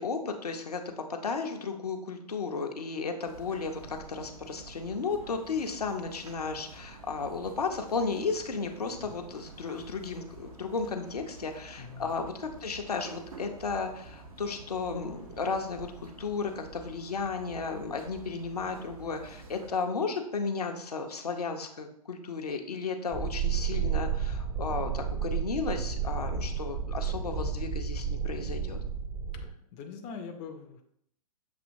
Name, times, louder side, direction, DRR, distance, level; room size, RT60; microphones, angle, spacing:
voice 1, 0.0-28.8, left 4 dB, 75° left, 4 dB, 0.7 m, -34 dB
sound 1, 3.2-19.7, right 3 dB, 65° right, 1.2 m, -49 dB
voice 2, 11.8-12.2 29.5-30.8, left 5 dB, 30° left, 4 dB, 0.5 m, -43 dB
sound 2, 23.1-29.5, right 7 dB, 20° right, 0.7 m, -32 dB
7.1 x 2.8 x 2.6 m, 0.70 s
figure-of-eight pair, 115°, 20 cm